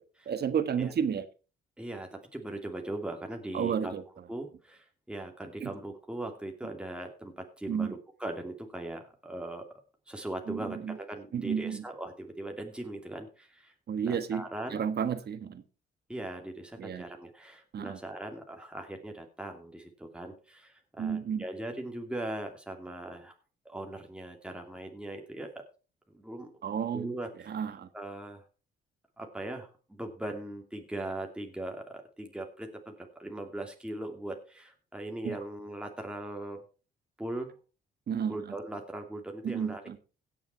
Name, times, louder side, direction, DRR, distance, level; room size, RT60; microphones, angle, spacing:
voice 1, 0.2-1.2 3.5-4.0 5.6-5.7 7.7-7.9 10.5-11.0 11.3-11.8 13.9-14.4 14.7-15.6 16.8-17.0 17.7-18.0 21.0-21.4 26.6-27.1 27.5-27.9 35.2-35.4 38.1-38.5 39.4-40.0, right 7 dB, 55° right, 11 dB, 1.6 m, -31 dB
voice 2, 1.8-3.9 4.3-9.7 10.1-13.7 14.0-14.8 16.1-23.3 23.6-25.6 26.1-26.5 26.9-27.6 27.9-28.4 29.2-36.6 37.2-37.5 38.3-40.0, right 1 dB, 5° right, 2 dB, 2.6 m, -40 dB
16.5 x 7.2 x 4.5 m, 0.34 s
cardioid pair, 90°, 20 cm